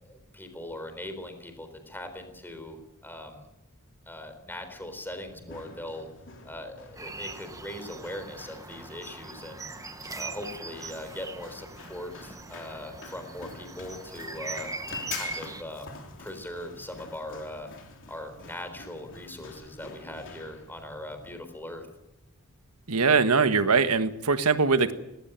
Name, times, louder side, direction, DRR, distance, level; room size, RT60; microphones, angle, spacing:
voice 1, 0.1-3.4 4.1-6.1 6.4-9.7 10.1-14.7 15.1-17.7 18.1-21.9, left 1 dB, 10° left, 7 dB, 4.0 m, -40 dB
Run, 5.3-21.3, left 4 dB, 60° left, 3.4 m, -47 dB
sound 1, 7.0-15.6, right 3 dB, 15° right, 1.2 m, -41 dB
voice 2, 22.9-24.9, right 4 dB, 75° right, 10 dB, 1.5 m, -22 dB
19.0 x 18.0 x 9.2 m, 0.91 s
head